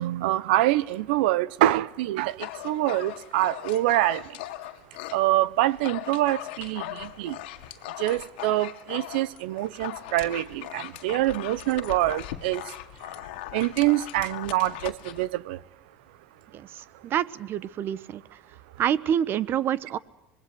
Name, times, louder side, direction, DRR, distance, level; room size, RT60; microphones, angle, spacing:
voice 1, 0.0-4.4 5.1-7.4 8.0-12.6 13.5-15.6, right 15 dB, 80° right, 1.1 m, -25 dB
Dog, 2.3-5.2 5.6-15.3, left 16 dB, 85° left, 1.9 m, -39 dB
voice 2, 16.5-18.2 18.8-20.0, right 10 dB, 40° right, 1.1 m, -27 dB
25.5 x 21.5 x 7.9 m
supercardioid pair, 125°, 5 cm